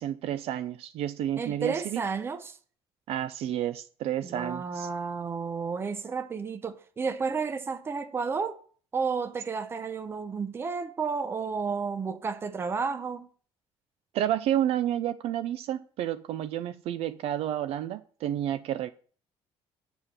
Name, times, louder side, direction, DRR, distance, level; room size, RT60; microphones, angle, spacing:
voice 1, 0.0-2.0 3.1-4.9 14.1-18.9, right 11 dB, 65° right, 0.5 m, -30 dB
voice 2, 1.4-2.6 4.2-8.6 8.9-13.3, right 5 dB, 20° right, 0.7 m, -32 dB
7.1 x 6.6 x 6.0 m
cardioid pair, 170°, 11 cm